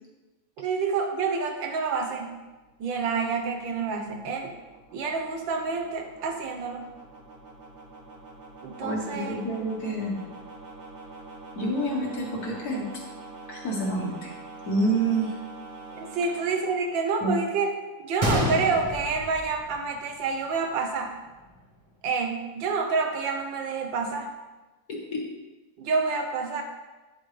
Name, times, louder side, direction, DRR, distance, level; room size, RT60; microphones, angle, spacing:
voice 1, 0.6-2.3 2.8-4.5 4.9-6.8 8.6-9.4 16.0-17.7 18.0-21.1 22.0-24.3 25.8-26.6, right 4 dB, 80° right, 3 dB, 1.7 m, -28 dB
sound 1, 1.6-17.7, right 3 dB, 50° right, 1.4 m, -46 dB
voice 2, 8.8-10.2 11.6-12.9 13.5-14.3 14.7-15.4 17.2-17.3 24.9-25.2, right 2 dB, 55° left, -2 dB, 2.1 m, -28 dB
Gunshot gunfire, 18.2-20.2 20.5-20.6 21.3-21.5, equal, 25° right, 0.9 m, -28 dB
9.8 x 7.3 x 3.3 m, 1.2 s
omnidirectional pair, 2.1 m